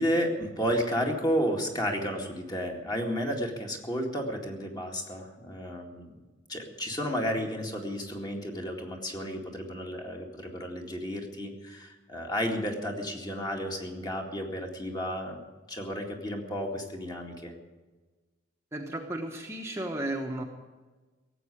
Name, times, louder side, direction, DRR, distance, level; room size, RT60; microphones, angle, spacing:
voice 1, 0.0-6.1 6.5-17.5, equal, 20° left, 2 dB, 2.1 m, -32 dB
voice 2, 18.7-20.4, right 1 dB, 15° right, 1 dB, 1.1 m, -34 dB
17.5 x 8.1 x 9.9 m, 1.3 s
head